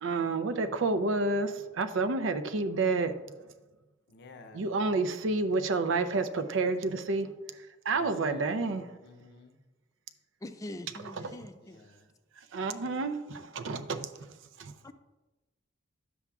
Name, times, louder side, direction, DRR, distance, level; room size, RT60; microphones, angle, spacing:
voice 1, 0.0-3.2 4.5-7.3 7.9-8.8 11.2-11.3 12.5-14.1 14.6-14.7, right 3 dB, 70° right, 0.5 m, -29 dB
voice 2, 4.1-4.6 7.9-9.6 11.6-12.1, left 2 dB, 55° left, 0.6 m, -50 dB
voice 3, 10.4-11.8 14.8-14.9, left 1 dB, 15° left, 0.3 m, -43 dB
9.7 x 7.0 x 2.3 m
head